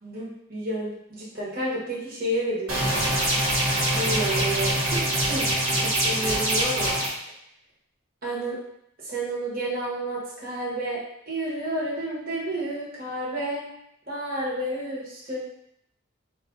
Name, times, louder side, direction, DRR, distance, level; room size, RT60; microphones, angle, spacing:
voice 1, 0.0-3.1 3.5-3.7 3.9-4.8 5.3-5.5 5.8-7.0 8.2-8.6 9.0-13.7 14.1-15.4, right 1 dB, 45° right, -7 dB, 1.2 m, -30 dB
sound 1, 2.7-7.1, right 1 dB, 90° right, 1.3 m, -24 dB
4.0 x 2.5 x 3.8 m, 0.77 s
head